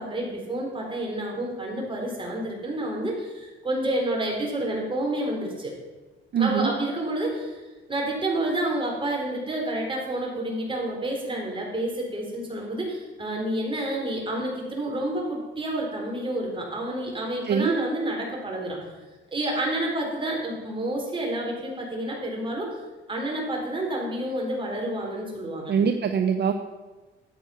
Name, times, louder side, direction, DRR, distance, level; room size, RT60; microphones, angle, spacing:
voice 1, 0.0-5.7 6.4-7.6 7.9-18.8 19.3-22.8 23.1-25.7, right 1 dB, 25° right, -1 dB, 4.1 m, -29 dB
voice 2, 6.3-6.7 17.5-17.7 25.7-26.5, right 7 dB, 55° right, 7 dB, 0.8 m, -23 dB
12.0 x 8.4 x 5.8 m, 1.2 s
cardioid pair, 90°, 20 cm